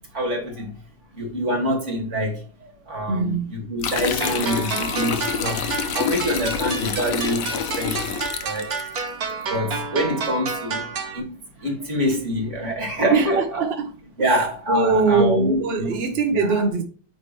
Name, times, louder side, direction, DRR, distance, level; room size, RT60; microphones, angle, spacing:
voice 1, 0.1-0.7 1.1-8.7 9.5-10.9 11.1-11.3 11.6-13.7 14.2-15.9 16.3-16.6, equal, 35° right, 2.4 m, -26 dB
voice 2, 3.1-3.5 13.1-13.9 14.2-14.4 14.7-16.8, right 4 dB, 70° right, 0.5 m, -22 dB
sound 1, 3.8-9.0, left 7 dB, 80° left, 0.7 m, -28 dB
sound 2, 4.2-11.2, right 4 dB, 50° right, 1.4 m, -30 dB
9.1 x 3.3 x 4.5 m
omnidirectional pair, 2.4 m